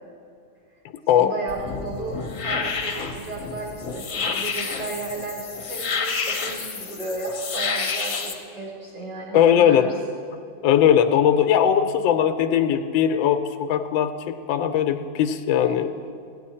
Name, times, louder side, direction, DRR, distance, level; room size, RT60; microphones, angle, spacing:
voice 1, 1.1-9.9, right 2 dB, 60° right, -8 dB, 4.6 m, -34 dB
sound 1, 1.5-8.3, left 5 dB, 50° left, 1.1 m, -29 dB
voice 2, 9.3-9.9 10.6-16.1, left 9 dB, 85° left, 7 dB, 1.3 m, -19 dB
16.5 x 10.0 x 4.3 m, 2.5 s
omnidirectional pair, 2.1 m